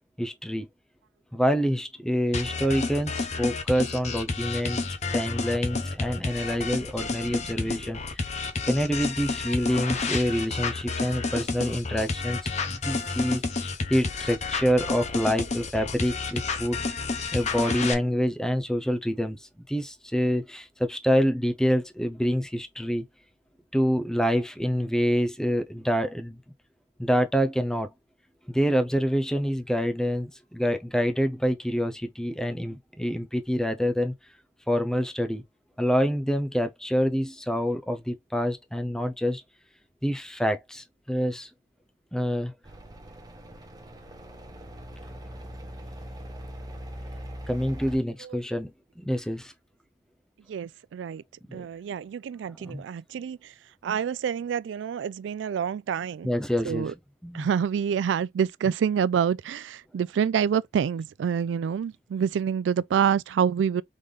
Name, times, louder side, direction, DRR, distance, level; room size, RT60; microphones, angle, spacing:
voice 1, 0.2-0.7 1.3-4.8 5.1-8.0 8.6-12.4 12.7-13.4 13.9-16.8 17.3-19.4 19.7-23.0 23.7-26.4 27.0-27.9 28.5-34.1 34.7-35.4 35.8-39.4 40.0-41.5 42.1-42.5 47.5-48.7 49.0-49.5 51.5-51.7 52.6-52.8 56.2-56.9 57.2-57.5, equal, 5° left, 0.6 m, -26 dB
sound 1, 2.3-17.9, left 4 dB, 40° left, 0.8 m, -30 dB
sound 2, 42.6-48.0, equal, 20° right, 0.9 m, -41 dB
voice 2, 50.5-51.2 51.5-53.5 53.8-56.3 56.7-56.9 57.3-63.8, right 7 dB, 85° right, 0.3 m, -27 dB
3.9 x 3.3 x 3.4 m
head